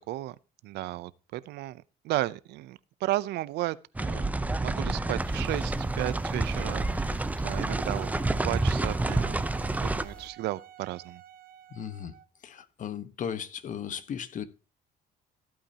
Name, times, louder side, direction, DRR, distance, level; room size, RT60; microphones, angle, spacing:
voice 1, 0.6-11.2, right 16 dB, 80° right, 0.6 m, -34 dB
sound 1, 3.9-10.0, right 2 dB, 10° right, 0.6 m, -29 dB
sound 2, 5.2-10.3, equal, 5° left, 1.8 m, -50 dB
Wind instrument woodwind instrument, 7.9-12.4, right 10 dB, 60° right, 0.9 m, -50 dB
voice 2, 11.7-12.1 12.4-14.4, left 8 dB, 50° left, 1.2 m, -36 dB
15.0 x 8.6 x 2.9 m
cardioid pair, 110°, 17 cm